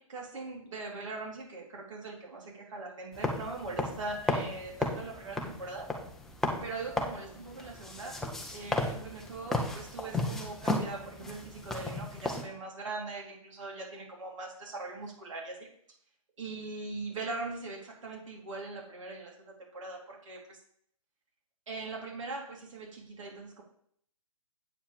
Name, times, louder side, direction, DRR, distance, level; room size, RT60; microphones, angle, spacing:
voice 1, 0.0-5.9 6.6-8.2 8.5-15.7 16.4-20.6 21.7-23.6, right 3 dB, 60° right, -1 dB, 3.7 m, -41 dB
sound 1, 3.1-12.4, left 2 dB, ahead, 0.6 m, -35 dB
8.6 x 4.6 x 7.2 m, 0.67 s
hypercardioid pair, 155°, 18 cm